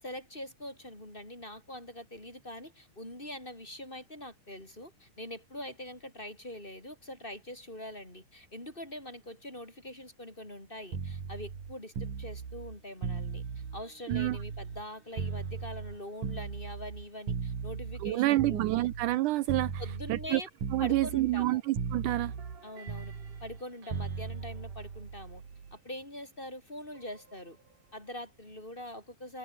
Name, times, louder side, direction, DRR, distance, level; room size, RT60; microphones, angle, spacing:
voice 1, 0.0-13.4 13.7-18.6 19.8-20.5 20.8-21.6 22.6-23.1 23.4-25.4 25.7-27.6 27.9-29.4, left 1 dB, 15° left, 5.5 m, -43 dB
sound 1, 10.9-14.9 15.2-19.2 19.5-20.3 20.6-21.5 21.7-25.7 27.0-27.2, right 6 dB, 55° right, 5.2 m, -37 dB
voice 2, 18.0-19.7 20.1-20.4 20.7-22.3, right 17 dB, 85° right, 1.8 m, -28 dB
omnidirectional pair, 4.4 m